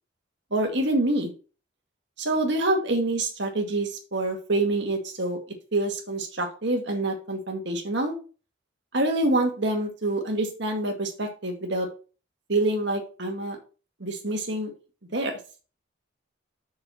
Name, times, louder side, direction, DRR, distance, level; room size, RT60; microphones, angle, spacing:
voice 1, 0.5-1.3 2.2-5.4 5.7-8.2 8.9-11.9 12.5-13.6 14.0-14.7 15.1-15.4, right 2 dB, 60° right, 3 dB, 2.1 m, -26 dB
6.2 x 5.1 x 5.8 m, 0.35 s
head